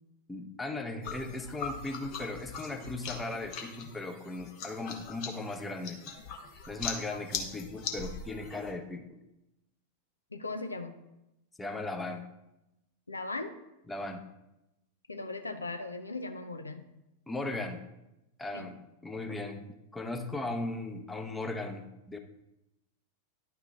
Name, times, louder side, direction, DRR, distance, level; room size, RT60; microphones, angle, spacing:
voice 1, 0.3-6.0 6.7-9.0 11.6-12.2 13.9-14.2 17.3-17.8 18.4-18.8 19.0-19.6 19.9-22.2, left 2 dB, 10° left, 5 dB, 0.8 m, -37 dB
sound 1, 1.0-8.7, left 5 dB, 45° left, 1.3 m, -41 dB
voice 2, 10.3-10.9 13.1-13.5 15.1-16.9 18.5-18.7, left 3 dB, 80° left, 8 dB, 0.6 m, -38 dB
10.5 x 5.8 x 3.5 m, 0.91 s
figure-of-eight pair, 90°, 0 cm